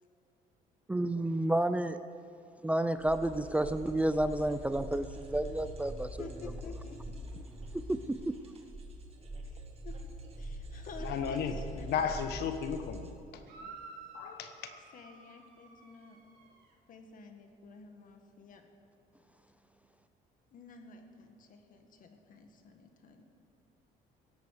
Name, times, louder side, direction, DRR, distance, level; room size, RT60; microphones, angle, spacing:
voice 1, 0.9-2.0 2.6-6.2 7.7-8.4, right 1 dB, 10° right, 11 dB, 0.4 m, -30 dB
sound 1, 3.0-13.1, right 1 dB, 35° right, 2.0 m, -44 dB
voice 2, 6.2-7.6 9.4-10.0 10.4-12.2 14.9-16.2 16.9-18.6 20.5-23.2, left 4 dB, 55° left, 5 dB, 1.8 m, -51 dB
voice 3, 11.0-11.5 11.8-13.4 14.1-14.5, left 7 dB, 75° left, 8 dB, 1.1 m, -34 dB
sound 2, 13.4-16.7, right 3 dB, 70° right, 3.3 m, -51 dB
16.5 x 8.6 x 6.7 m, 2.6 s
cardioid pair, 110°, 17 cm